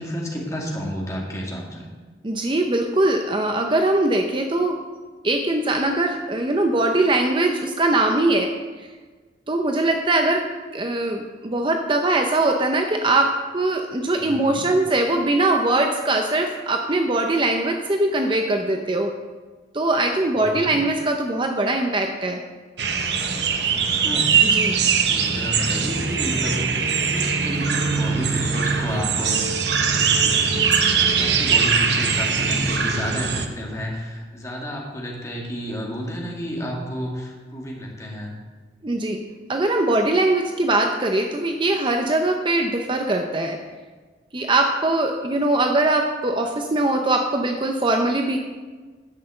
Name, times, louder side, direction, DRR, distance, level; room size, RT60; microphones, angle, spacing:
voice 1, 0.0-1.9 14.2-14.7 20.4-20.8 23.7-24.3 24.7-38.3, equal, 15° left, -2 dB, 2.1 m, -31 dB
voice 2, 2.2-4.8 5.2-8.5 9.5-10.5 10.7-19.1 19.7-22.4 24.4-24.8 38.8-39.2 39.5-43.6 44.3-48.4, right 2 dB, 25° right, 4 dB, 0.7 m, -21 dB
sound 1, 22.8-33.5, right 6 dB, 70° right, 1.0 m, -21 dB
10.5 x 6.6 x 7.7 m, 1.4 s
head